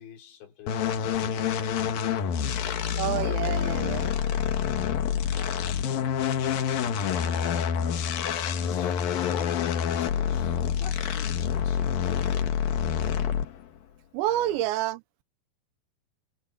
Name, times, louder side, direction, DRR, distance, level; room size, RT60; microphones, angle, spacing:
voice 1, 0.0-1.8 5.3-6.1 7.2-7.8 8.6-12.6 14.3-14.7, left 8 dB, 75° left, 6.4 m, -45 dB
sound 1, 0.7-13.6, left 8 dB, 60° left, 2.9 m, -27 dB
sound 2, 1.7-8.0, right 4 dB, 60° right, 9.0 m, -52 dB
voice 2, 3.0-4.1 14.1-15.0, right 14 dB, 80° right, 3.1 m, -28 dB
omnidirectional pair, 5.2 m